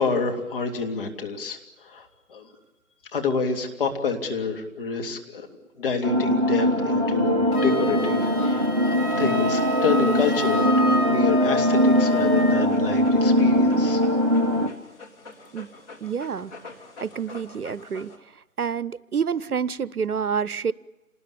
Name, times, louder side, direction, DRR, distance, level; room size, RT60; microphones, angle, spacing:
voice 1, 0.0-1.6 1.8-2.5 3.1-5.5 5.8-14.0, left 5 dB, 35° left, 3 dB, 3.2 m, -28 dB
sound 1, 6.0-14.7, equal, 20° right, 0.9 m, -21 dB
Wind instrument woodwind instrument, 7.5-12.7, left 1 dB, 75° left, 3.1 m, -29 dB
Dog, 11.4-18.2, left 3 dB, 10° left, 1.6 m, -46 dB
voice 2, 16.0-16.5 17.0-18.1 18.6-20.7, right 6 dB, 75° right, 20 dB, 0.9 m, -28 dB
28.0 x 20.0 x 8.7 m, 1.1 s
figure-of-eight pair, 155°, 45 cm